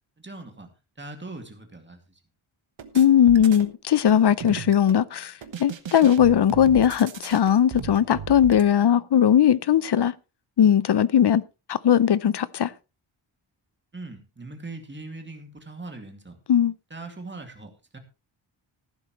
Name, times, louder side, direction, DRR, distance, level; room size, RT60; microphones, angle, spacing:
voice 1, 0.2-0.7 1.0-2.2 13.9-16.4 16.9-18.0, right 2 dB, 20° right, 2.4 m, -40 dB
sound 1, 2.8-3.7 4.1-5.0 5.4-8.6, right 7 dB, 65° right, 1.3 m, -37 dB
voice 2, 2.9-5.3 5.6-10.1 10.6-11.4 11.7-12.7 16.5-16.7, left 9 dB, 55° left, 0.6 m, -19 dB
14.5 x 11.5 x 3.1 m
wide cardioid pair, 160°, 49 cm